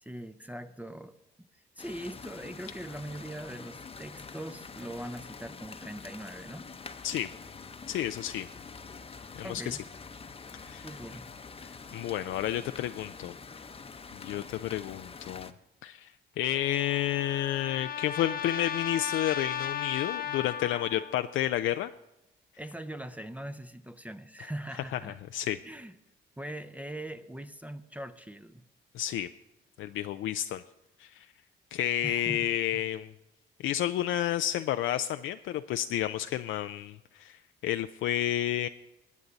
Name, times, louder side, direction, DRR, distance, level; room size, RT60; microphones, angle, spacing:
voice 1, 0.0-1.5 1.8-6.7 9.4-9.9 10.8-11.3 22.6-25.2 25.6-25.9 26.4-28.7 32.0-32.8, right 1 dB, 5° right, 10 dB, 0.6 m, -41 dB
sound 1, 1.8-15.5, left 5 dB, 30° left, 0.8 m, -46 dB
voice 2, 7.9-8.5 9.4-9.8 10.6-10.9 11.6-13.3 14.2-15.5 15.8-21.9 24.9-25.0 25.3-25.6 28.9-29.3 29.8-30.6 31.0-31.3 31.7-33.1 33.6-38.7, left 12 dB, 80° left, 9 dB, 0.4 m, -31 dB
Trumpet, 16.4-21.2, left 8 dB, 50° left, 1.1 m, -36 dB
21.0 x 8.4 x 4.0 m, 0.93 s
cardioid pair, 90°, 20 cm